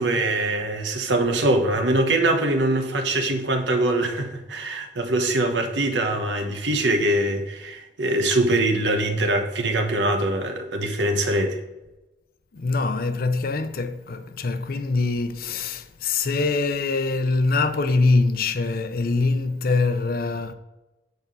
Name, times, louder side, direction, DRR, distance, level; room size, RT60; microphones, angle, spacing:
voice 1, 0.0-11.6, right 1 dB, 90° right, 1.2 m, -23 dB
voice 2, 12.5-20.5, left 3 dB, 55° left, 0.6 m, -23 dB
8.1 x 4.5 x 5.4 m
head